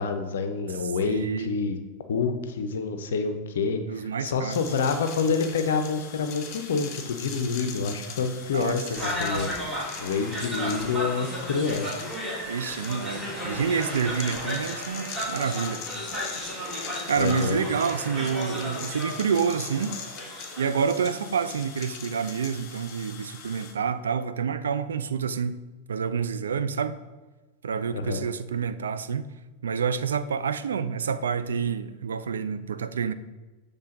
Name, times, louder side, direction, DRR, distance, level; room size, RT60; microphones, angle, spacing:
voice 1, 0.0-1.8 2.1-9.5 10.0-11.9 17.2-17.6 27.9-28.2, left 5 dB, 60° left, 0.5 m, -27 dB
voice 2, 1.0-1.6 3.9-4.6 8.5-8.8 12.5-15.8 17.1-20.0 20.6-25.6 25.9-27.0 27.6-29.3 29.6-33.1, right 6 dB, 65° right, 0.3 m, -28 dB
sound 1, 4.5-23.7, left 6 dB, 40° left, 0.9 m, -41 dB
sound 2, 8.9-20.7, equal, 10° right, 2.0 m, -34 dB
7.4 x 3.4 x 4.0 m
figure-of-eight pair, 90°, 0 cm